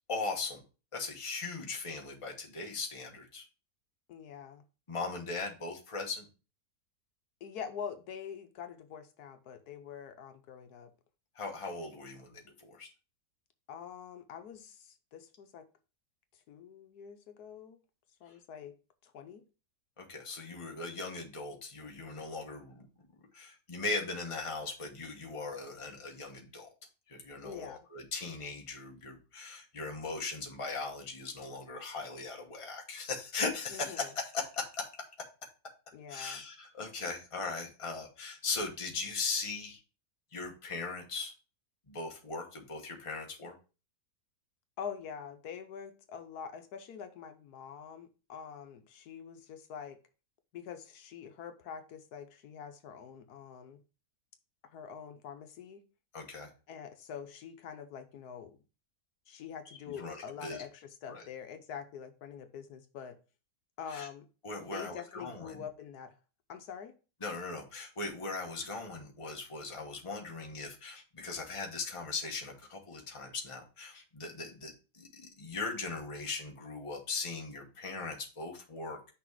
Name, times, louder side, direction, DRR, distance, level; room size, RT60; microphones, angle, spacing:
voice 1, 0.1-0.6 0.9-3.4 4.9-6.2 11.3-12.9 18.3-18.4 20.0-22.9 23.3-26.7 27.1-35.0 36.1-39.8 40.3-41.3 41.9-43.5 56.1-56.5 60.0-60.6 61.1-61.2 63.9-64.1 64.4-65.6 67.2-79.0, left 3 dB, 20° left, 2 dB, 1.1 m, -39 dB
voice 2, 4.1-4.6 7.4-10.9 13.7-15.6 16.3-17.8 18.2-18.8 19.0-19.4 27.4-27.9 33.7-34.1 35.9-36.4 44.8-50.0 50.5-53.8 54.7-55.8 56.7-58.6 59.3-63.2 63.8-64.3 64.7-66.1 66.5-66.9, left 7 dB, 75° left, 7 dB, 1.3 m, -45 dB
6.0 x 3.4 x 4.6 m, 0.34 s
omnidirectional pair, 1.7 m